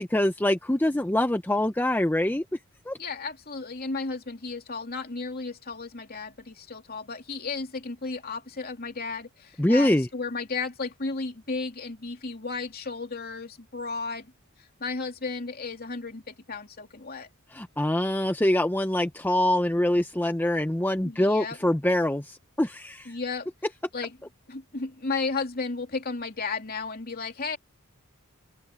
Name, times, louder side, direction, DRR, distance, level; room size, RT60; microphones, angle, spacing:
voice 1, 0.0-2.4 2.9-3.0 9.6-10.1 17.5-23.1, left 1 dB, 10° left, 0.6 m, -24 dB
voice 2, 3.0-14.3 14.8-17.3 21.0-21.6 23.1-23.5 23.9-24.1 24.5-27.6, left 4 dB, 45° left, 2.9 m, -34 dB
open air
head